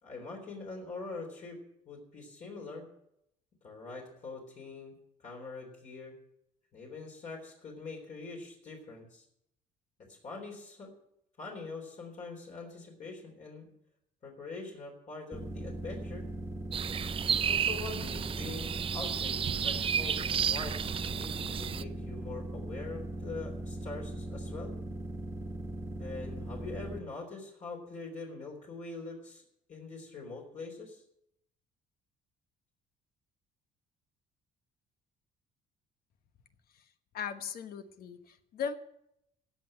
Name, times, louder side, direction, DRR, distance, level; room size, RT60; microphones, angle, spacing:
voice 1, 0.0-1.6 1.9-2.9 3.6-6.1 6.7-9.2 10.0-10.9 11.4-13.7 14.2-16.3 17.3-24.8 26.0-29.4 29.7-31.0, left 3 dB, 45° left, -1 dB, 3.6 m, -44 dB
sound 1, 15.3-27.0, right 1 dB, 15° right, 1.6 m, -39 dB
sound 2, 16.7-21.8, right 8 dB, 35° right, 0.4 m, -32 dB
voice 2, 37.1-38.8, left 7 dB, 65° left, 9 dB, 1.2 m, -38 dB
16.0 x 5.9 x 9.6 m, 0.79 s
cardioid pair, 110°, 17 cm